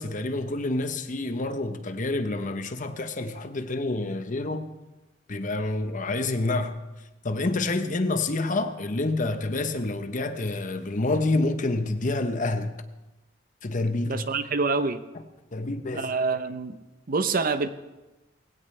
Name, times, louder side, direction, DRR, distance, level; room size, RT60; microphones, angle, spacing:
voice 1, 0.0-4.7 5.3-6.8 7.2-12.7 13.6-14.2 15.5-16.1, left 2 dB, 40° left, 0.9 m, -28 dB
voice 2, 14.0-15.0 15.9-16.8 17.1-17.7, right 4 dB, 45° right, 0.7 m, -26 dB
19.5 x 17.0 x 3.3 m
head